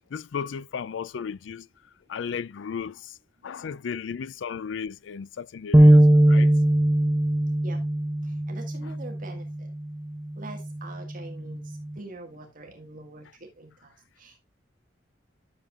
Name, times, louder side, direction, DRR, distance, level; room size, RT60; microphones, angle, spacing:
voice 1, 0.1-1.7 2.1-3.1 3.4-6.0 6.3-6.5, left 6 dB, 80° left, 0.4 m, -34 dB
sound 1, 5.7-12.0, right 1 dB, 15° right, 0.4 m, -21 dB
voice 2, 8.5-9.5 10.4-14.4, right 2 dB, 50° right, 1.8 m, -44 dB
11.0 x 7.2 x 2.4 m
head